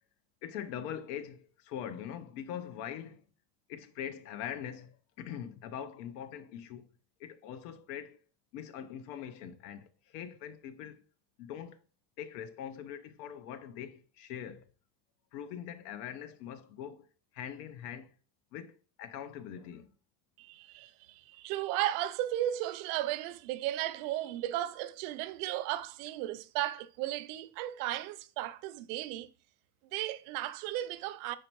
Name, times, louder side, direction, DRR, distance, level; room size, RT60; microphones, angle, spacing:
voice 1, 0.4-3.2 3.7-6.9 7.2-8.2 8.5-9.9 10.1-11.0 11.4-11.8 12.2-14.6 15.3-17.1 17.3-18.1 18.5-19.9, left 9 dB, 90° left, 0.9 m, -42 dB
voice 2, 20.4-29.3 29.9-31.4, right 14 dB, 70° right, 0.6 m, -35 dB
4.7 x 4.3 x 4.6 m
cardioid pair, 160°, 46 cm